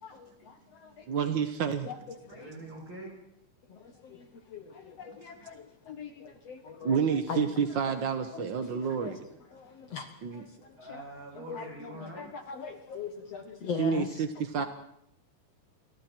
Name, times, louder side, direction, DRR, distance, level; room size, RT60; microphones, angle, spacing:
voice 1, 0.0-1.1 1.9-2.5 3.7-7.0 7.3-7.5 7.8-8.0 8.3-9.2 9.5-11.0 11.3-14.2 14.6-14.7, left 6 dB, 55° left, 7 dB, 2.3 m, -41 dB
voice 2, 1.1-1.9 6.8-9.2 10.2-10.4 13.8-14.6, right 6 dB, 60° right, 9 dB, 1.2 m, -29 dB
voice 3, 2.2-3.2 10.8-12.3, right 1 dB, 35° right, -1 dB, 8.5 m, -44 dB
29.0 x 23.5 x 4.5 m, 0.79 s
omnidirectional pair, 3.8 m